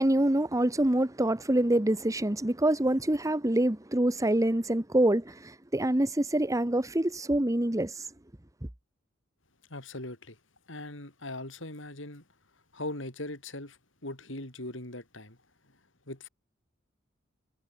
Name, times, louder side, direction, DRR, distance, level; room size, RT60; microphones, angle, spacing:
voice 1, 0.0-8.0, right 1 dB, 15° right, 1.2 m, -26 dB
voice 2, 9.7-10.4 10.7-12.2 12.7-15.4 16.1-16.3, left 2 dB, 75° left, 6.3 m, -40 dB
head